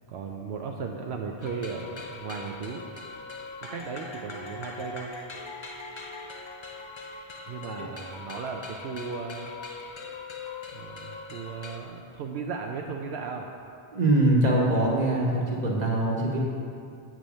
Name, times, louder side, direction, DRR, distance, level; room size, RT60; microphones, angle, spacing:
voice 1, 0.1-2.8 3.6-5.1 7.5-9.5 10.7-13.5, right 5 dB, 80° right, 2 dB, 0.9 m, -36 dB
sound 1, 1.4-11.8, left 3 dB, 35° left, 0.5 m, -41 dB
voice 2, 13.9-16.4, right 1 dB, 40° right, -2 dB, 1.4 m, -23 dB
8.4 x 6.2 x 5.4 m, 2.4 s
omnidirectional pair, 1.1 m